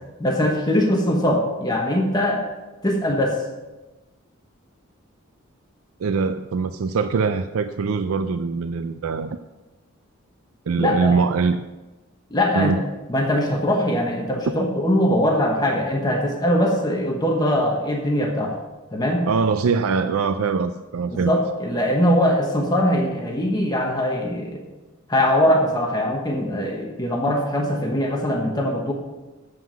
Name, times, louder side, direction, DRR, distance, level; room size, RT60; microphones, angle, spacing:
voice 1, 0.2-2.4 2.8-3.4 10.8-11.2 12.3-12.7 13.1-18.6 18.9-19.2 21.1-24.6 25.1-28.9, left 1 dB, 20° left, 0 dB, 1.1 m, -21 dB
voice 2, 6.0-9.4 10.7-11.6 12.5-12.8 19.3-21.3, right 5 dB, 80° right, 10 dB, 0.4 m, -22 dB
7.9 x 7.5 x 6.1 m, 1.1 s
head